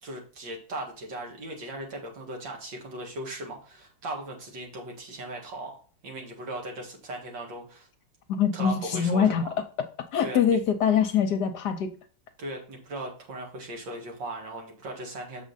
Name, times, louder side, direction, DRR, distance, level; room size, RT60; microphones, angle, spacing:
voice 1, 0.0-7.9 8.5-9.5 10.2-10.6 12.4-15.4, right 1 dB, 70° right, 1 dB, 2.4 m, -38 dB
voice 2, 8.4-9.4 10.1-11.9, left 7 dB, 65° left, 8 dB, 1.2 m, -23 dB
7.3 x 4.9 x 4.0 m, 0.38 s
omnidirectional pair, 2.1 m